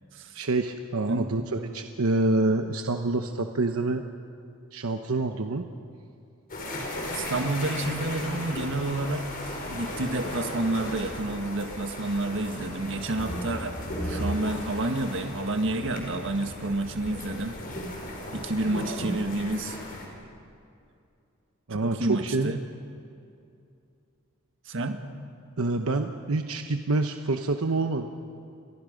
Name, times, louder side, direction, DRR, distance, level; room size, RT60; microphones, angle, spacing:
voice 1, 0.3-4.1 4.7-5.7 18.9-19.1 21.7-22.5 25.6-28.1, right 2 dB, 85° right, 5 dB, 1.0 m, -27 dB
sound 1, 6.5-20.1, left 1 dB, 45° left, 4.9 m, -35 dB
voice 2, 7.1-9.3 9.7-13.8 14.0-17.6 18.3-19.8 21.8-22.6 24.7-25.0, right 2 dB, 65° right, 6 dB, 1.6 m, -29 dB
30.0 x 23.0 x 5.2 m, 2.5 s
head